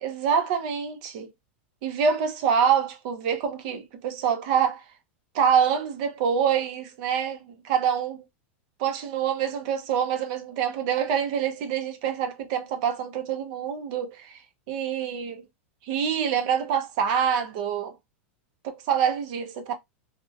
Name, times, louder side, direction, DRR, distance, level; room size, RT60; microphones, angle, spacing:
voice 1, 0.0-1.3 1.8-4.8 5.3-8.2 8.8-14.4 14.7-15.4 15.8-17.9 18.6-19.7, right 7 dB, 40° right, 0.4 m, -26 dB
2.4 x 2.1 x 2.5 m
supercardioid pair, 175°, 7 cm